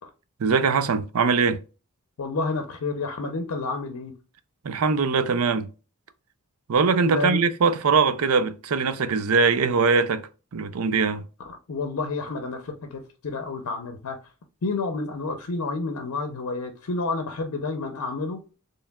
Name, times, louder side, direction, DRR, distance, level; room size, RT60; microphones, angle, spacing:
voice 1, 0.4-1.6 4.6-5.7 6.7-11.2, right 5 dB, 85° right, 0.5 m, -22 dB
voice 2, 2.2-4.1 7.1-7.4 11.5-14.2 14.6-18.4, left 3 dB, 85° left, 0.6 m, -30 dB
4.5 x 3.1 x 2.2 m
head